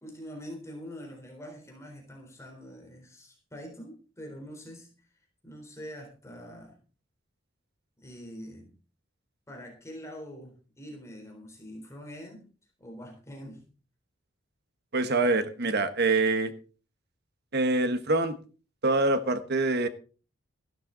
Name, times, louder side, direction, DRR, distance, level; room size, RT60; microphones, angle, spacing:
voice 1, 0.0-5.1 5.4-6.8 8.0-8.7 9.5-12.4 12.8-13.7, equal, 15° left, 3.9 m, -44 dB
voice 2, 14.9-16.5 17.5-18.3 18.8-19.9, right 2 dB, 55° right, 1.4 m, -25 dB
15.0 x 12.5 x 4.0 m
head